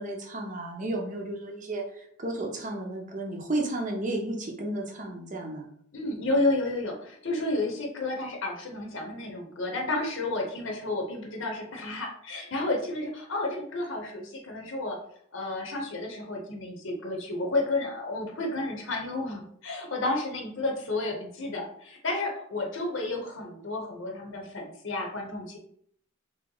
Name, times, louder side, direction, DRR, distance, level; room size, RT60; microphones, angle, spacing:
voice 1, 0.0-5.7, right 1 dB, 40° right, 1 dB, 0.7 m, -33 dB
voice 2, 5.9-15.0 15.3-25.6, left 2 dB, 65° left, 1 dB, 0.7 m, -31 dB
3.1 x 2.8 x 3.8 m, 0.65 s
head